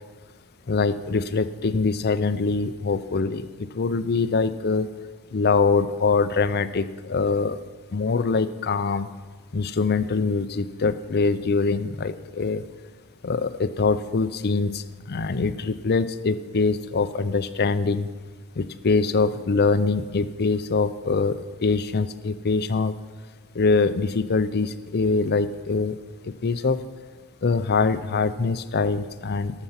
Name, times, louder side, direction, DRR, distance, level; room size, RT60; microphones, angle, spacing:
voice 1, 0.7-4.9 5.3-7.6 7.9-9.1 9.5-12.6 13.2-18.1 18.6-22.9 23.5-26.0 26.2-26.8 27.4-29.5, left 4 dB, 45° left, 13 dB, 0.5 m, -23 dB
18.0 x 7.0 x 5.8 m, 1.4 s
head